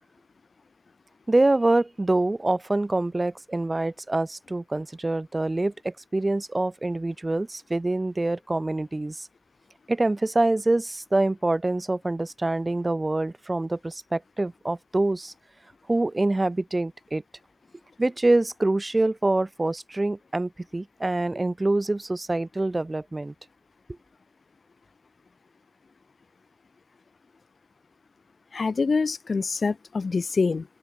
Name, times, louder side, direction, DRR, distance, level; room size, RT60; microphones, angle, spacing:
voice 1, 1.3-9.3 9.9-15.3 15.9-17.2 18.0-23.3, right 2 dB, 20° right, 3.5 m, -25 dB
voice 2, 28.5-30.6, left 4 dB, 45° left, 0.9 m, -25 dB
open air
wide cardioid pair, 160°, 0 cm